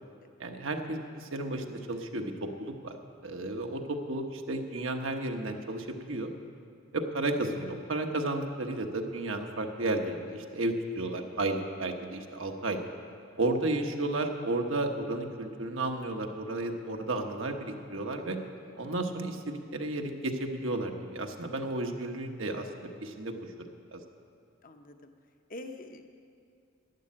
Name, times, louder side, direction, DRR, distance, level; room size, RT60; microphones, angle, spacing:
voice 1, 0.4-2.9 3.2-6.3 6.9-12.8 13.4-18.4 18.8-23.3 23.9-24.0, right 2 dB, 75° right, 3 dB, 1.2 m, -33 dB
voice 2, 24.6-25.1 25.5-26.1, left 2 dB, 45° left, 6 dB, 0.9 m, -44 dB
12.0 x 11.0 x 8.6 m, 2.4 s
head